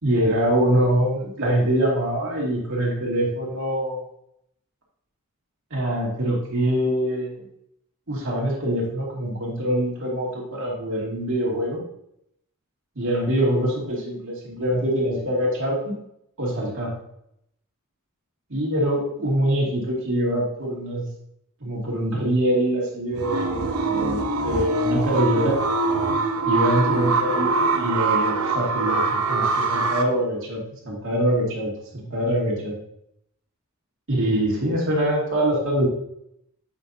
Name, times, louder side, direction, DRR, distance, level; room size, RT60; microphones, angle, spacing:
voice 1, 0.0-4.0 5.7-7.5 8.1-11.8 13.0-15.9 16.4-16.9 18.5-21.1 21.6-25.6 26.5-32.7 34.1-35.9, right 1 dB, 60° right, -4 dB, 2.5 m, -24 dB
sound 1, 23.2-30.0, right 3 dB, 80° right, 0.8 m, -23 dB
8.3 x 5.9 x 2.8 m, 0.75 s
head